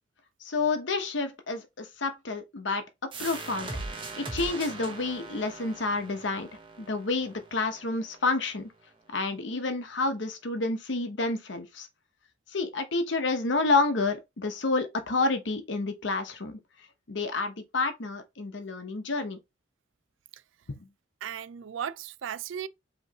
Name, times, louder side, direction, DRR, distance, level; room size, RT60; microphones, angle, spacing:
voice 1, 0.4-3.7 4.2-6.5 6.8-8.7 9.1-11.9 12.5-16.6 17.1-19.4 20.7-20.8, left 3 dB, 75° left, 0.9 m, -29 dB
sound 1, 3.1-8.5, right 3 dB, 25° right, 0.9 m, -40 dB
voice 2, 21.2-22.7, right 9 dB, 85° right, 0.4 m, -36 dB
5.1 x 3.1 x 2.8 m
head